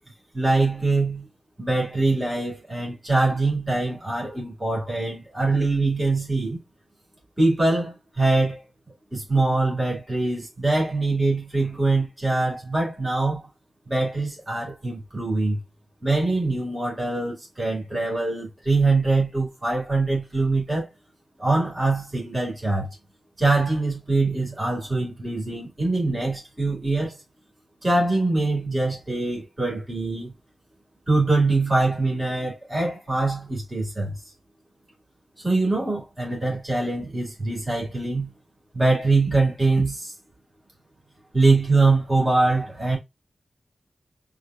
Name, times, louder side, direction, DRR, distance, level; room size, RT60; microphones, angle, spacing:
voice 1, 0.3-1.3 1.6-6.6 7.4-8.6 9.1-13.5 13.9-15.6 16.0-20.9 21.4-23.0 23.4-27.2 27.8-30.3 31.1-34.2 35.4-38.3 38.7-40.1 41.3-43.0, right 3 dB, 20° right, 2.3 m, -23 dB
4.9 x 2.6 x 2.4 m
wide cardioid pair, 110°, 0 cm